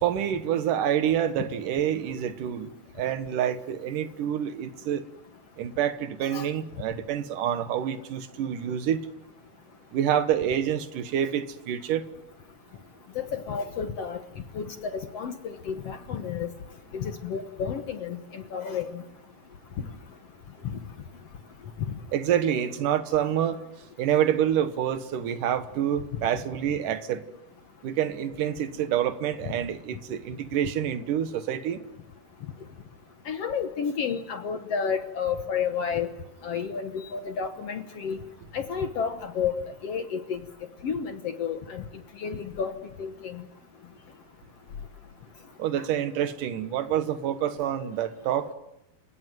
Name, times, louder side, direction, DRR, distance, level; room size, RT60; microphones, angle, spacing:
voice 1, 0.0-2.7 3.0-5.0 5.6-9.1 9.9-12.1 22.1-23.6 24.0-27.2 27.8-31.8 45.6-48.5, right 10 dB, 65° right, 2.7 m, -27 dB
voice 2, 13.1-14.2 14.5-16.5 16.9-19.0 33.3-36.1 36.4-38.2 38.5-40.4 40.8-41.8 42.2-42.7 43.0-43.4, left 6 dB, 65° left, 1.6 m, -31 dB
29.5 x 17.5 x 9.3 m
omnidirectional pair, 4.4 m